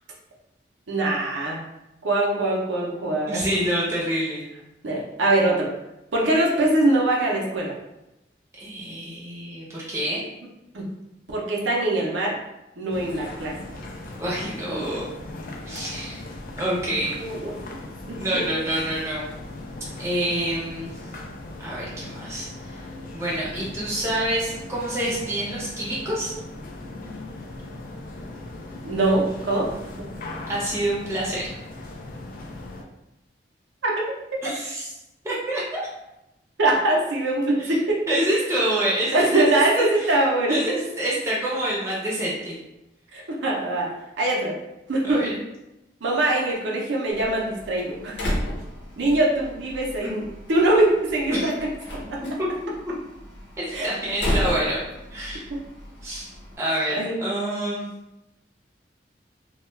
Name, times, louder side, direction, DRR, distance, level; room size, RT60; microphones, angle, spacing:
voice 1, 0.9-1.6 2.0-3.4 4.8-5.7 6.1-7.7 10.7-10.9 11.3-12.3 12.8-13.5 14.7-14.9 17.1-17.8 18.1-18.4 28.8-29.7 30.0-30.1 33.8-34.1 36.6-38.0 39.1-40.8 43.1-43.9 44.2-44.5 44.9-45.3 46.0-48.2 49.0-50.2 50.5-51.5 52.1-52.2 53.7-53.9 54.3-54.4 55.5-55.6 57.0-57.2, right 2 dB, 85° right, -3 dB, 0.6 m, -23 dB
voice 2, 3.3-4.5 8.6-10.2 14.2-15.1 15.6-16.2 16.6-17.1 18.1-19.3 20.0-20.9 21.6-22.8 23.1-26.3 30.5-31.5 34.4-34.9 35.2-35.8 37.6-37.8 38.1-40.2 40.5-42.6 45.0-45.3 50.0-50.1 51.3-51.5 53.6-54.8 55.1-55.4 56.0-56.3 56.6-57.9, right 1 dB, 15° right, -6 dB, 0.6 m, -27 dB
sound 1, 12.9-32.8, left 2 dB, 50° left, 0.3 m, -38 dB
Slam, 47.1-56.5, left 1 dB, 75° left, 0.8 m, -33 dB
2.2 x 2.2 x 3.1 m, 0.93 s
head